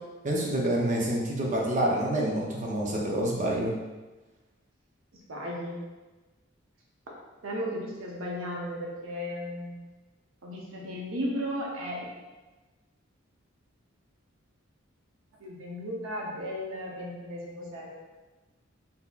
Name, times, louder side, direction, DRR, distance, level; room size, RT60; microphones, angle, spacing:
voice 1, 0.2-3.7, right 1 dB, 40° right, -2 dB, 0.6 m, -27 dB
voice 2, 5.3-5.8 7.4-9.7 10.4-12.0 15.4-17.9, equal, 90° right, -3 dB, 0.7 m, -35 dB
3.7 x 2.7 x 2.4 m, 1.2 s
head